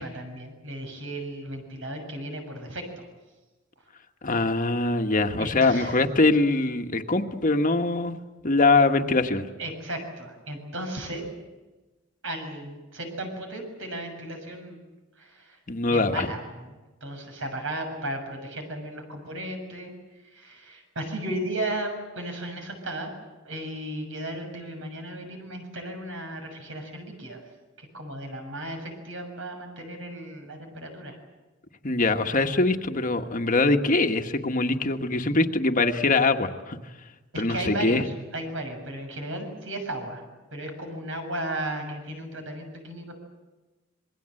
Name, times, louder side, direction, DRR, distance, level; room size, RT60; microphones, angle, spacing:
voice 1, 0.0-3.1 5.4-6.1 9.6-11.2 12.2-14.8 15.2-15.6 15.9-16.7 17.0-19.9 20.3-23.1 23.5-27.4 27.8-31.2 37.3-40.2 40.5-43.2, right 1 dB, 75° right, 4 dB, 6.9 m, -35 dB
voice 2, 4.2-8.2 8.4-9.5 15.7-16.3 31.8-36.8 37.4-38.0, left 3 dB, 40° left, 6 dB, 1.5 m, -23 dB
27.0 x 22.0 x 7.8 m, 1.2 s
head